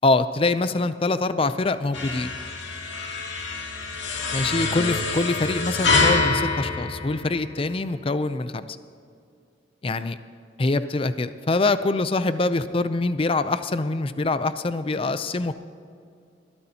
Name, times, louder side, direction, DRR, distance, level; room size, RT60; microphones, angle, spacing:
voice 1, 0.0-2.3 4.3-8.6 9.8-10.2 10.6-15.5, left 2 dB, 30° left, 12 dB, 0.4 m, -24 dB
sound 1, 1.9-7.7, left 3 dB, 80° left, 1.8 m, -26 dB
21.0 x 13.5 x 2.9 m, 2.4 s
head